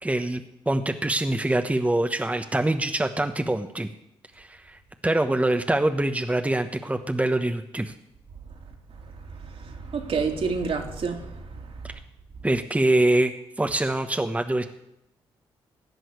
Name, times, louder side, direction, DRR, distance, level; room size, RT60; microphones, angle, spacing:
voice 1, 0.0-3.9 4.4-7.9 11.8-11.9 12.4-13.3 13.6-14.6, right 1 dB, 10° right, 6 dB, 1.2 m, -24 dB
voice 2, 9.3-11.7, right 5 dB, 55° right, 2 dB, 2.8 m, -29 dB
17.5 x 6.2 x 9.7 m, 0.85 s
hypercardioid pair, 40°, 11 cm